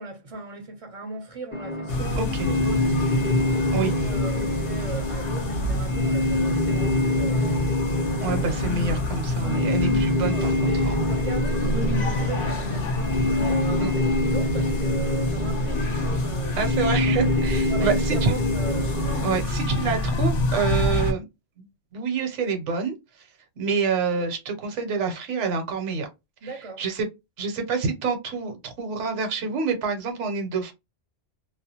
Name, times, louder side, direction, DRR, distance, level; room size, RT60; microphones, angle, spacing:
voice 1, 0.0-3.1 3.8-7.7 9.4-9.9 10.2-17.2 17.7-19.0 26.4-26.8, right 2 dB, 40° right, 0.5 m, -38 dB
sound 1, 1.5-19.4, left 1 dB, 15° left, 0.4 m, -27 dB
sound 2, 1.9-21.1, left 1 dB, 50° left, 0.9 m, -26 dB
voice 2, 2.2-2.5 3.7-3.9 8.2-11.0 13.8-13.9 16.6-18.3 19.2-21.2 21.6-21.7 21.9-22.9 23.6-26.1 26.4-27.1 27.4-30.7, right 5 dB, 75° right, 1.1 m, -27 dB
2.4 x 2.2 x 2.7 m
omnidirectional pair, 1.3 m